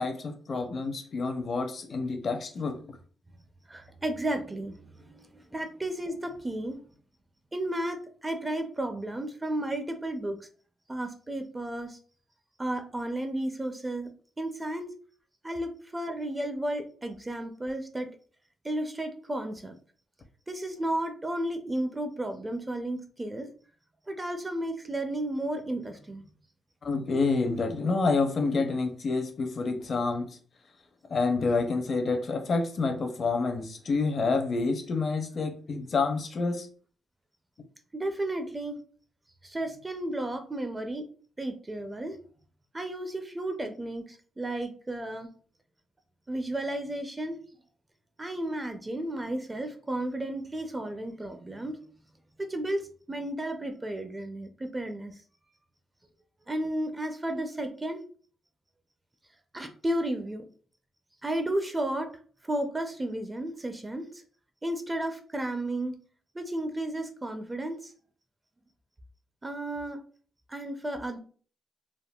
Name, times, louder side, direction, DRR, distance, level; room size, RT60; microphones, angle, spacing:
voice 1, 0.0-2.8 26.8-30.3 31.1-36.7, left 3 dB, 45° left, 6 dB, 0.5 m, -28 dB
voice 2, 3.7-6.8 7.5-10.4 10.9-12.0 12.6-14.1 14.4-14.9 15.4-18.1 18.6-19.7 20.5-23.5 24.1-26.3 37.9-38.8 39.4-41.1 41.4-42.2 42.7-45.3 46.3-47.4 48.2-51.8 52.4-55.1 56.5-58.0 59.5-60.4 61.2-62.1 62.4-64.2 64.6-65.9 66.3-67.9 69.4-70.0 70.5-71.2, right 1 dB, 15° right, 6 dB, 0.4 m, -33 dB
3.5 x 2.1 x 2.3 m, 0.43 s
cardioid pair, 105°, 0 cm